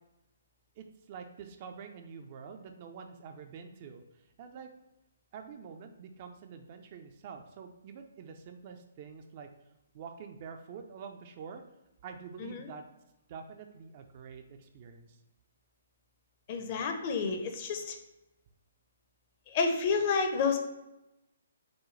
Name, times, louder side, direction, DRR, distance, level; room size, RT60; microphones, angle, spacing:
voice 1, 0.8-4.7 5.3-9.5 9.9-11.6 12.0-12.8 13.3-15.2, right 6 dB, 40° right, 6 dB, 0.5 m, -47 dB
voice 2, 16.5-18.0 19.5-20.6, left 5 dB, 35° left, 4 dB, 0.7 m, -30 dB
6.1 x 2.2 x 3.2 m, 0.94 s
figure-of-eight pair, 130°, 0 cm